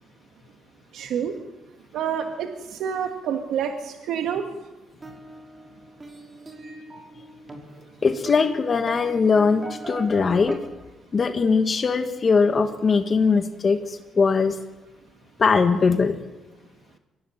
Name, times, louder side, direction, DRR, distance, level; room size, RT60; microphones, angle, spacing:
voice 1, 0.9-1.4 1.9-4.5, right 8 dB, 80° right, 5 dB, 1.6 m, -28 dB
sound 1, 5.0-10.5, right 2 dB, 25° right, 5.1 m, -40 dB
voice 2, 8.0-10.6 11.1-14.6 15.4-16.1, left 5 dB, 40° left, 7 dB, 1.7 m, -20 dB
23.5 x 16.5 x 9.2 m, 1.1 s
cardioid pair, 90°, 0 cm